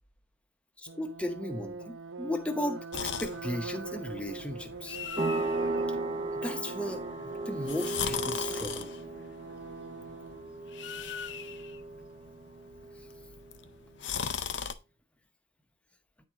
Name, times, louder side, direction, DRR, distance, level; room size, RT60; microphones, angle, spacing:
voice 1, 0.8-5.0 5.9-6.0 6.3-9.0 14.1-14.2, left 1 dB, 5° left, 0.8 m, -36 dB
sound 1, 0.9-10.5, right 3 dB, 80° right, 0.7 m, -42 dB
sound 2, 2.9-14.7, left 7 dB, 65° left, 0.6 m, -40 dB
sound 3, 5.2-13.5, right 2 dB, 30° right, 0.6 m, -36 dB
9.5 x 4.5 x 3.6 m
head